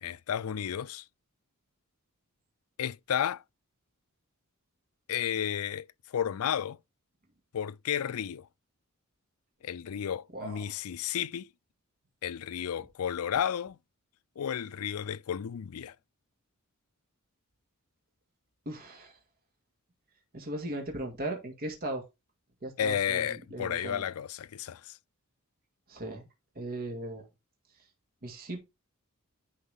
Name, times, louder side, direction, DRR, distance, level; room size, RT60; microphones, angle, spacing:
voice 1, 0.0-1.0 2.8-3.4 5.1-6.8 7.5-8.5 9.6-11.5 12.2-13.8 14.4-16.0 22.8-25.0, left 9 dB, 75° left, 0.4 m, -32 dB
voice 2, 18.7-19.1 20.3-22.0 22.6-24.1 25.9-26.3 26.6-27.3 28.2-28.6, right 1 dB, 45° right, 2.0 m, -37 dB
10.5 x 4.6 x 3.5 m
head